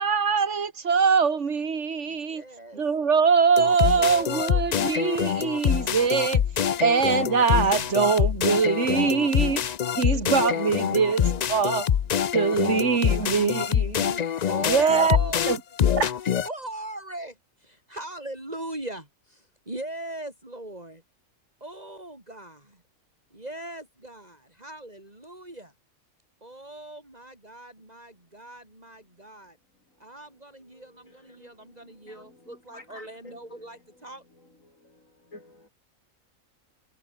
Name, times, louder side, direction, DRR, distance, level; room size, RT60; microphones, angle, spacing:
voice 1, 0.0-2.4 2.8-6.4 6.8-9.6 10.0-11.2 11.5-11.8 12.3-13.8 14.6-15.2 15.5-15.6 16.0-16.1, right 5 dB, 55° right, 2.0 m, -23 dB
voice 2, 2.0-2.8 4.0-4.6 10.0-12.1 12.7-15.4 16.4-21.0 21.6-22.8 23.3-25.7 26.4-29.6 30.0-34.2, right 1 dB, 30° right, 6.1 m, -40 dB
sound 1, 3.6-16.5, left 8 dB, 90° left, 0.3 m, -25 dB
voice 3, 30.7-34.0 34.6-35.7, left 2 dB, 65° left, 6.7 m, -52 dB
omnidirectional pair, 1.5 m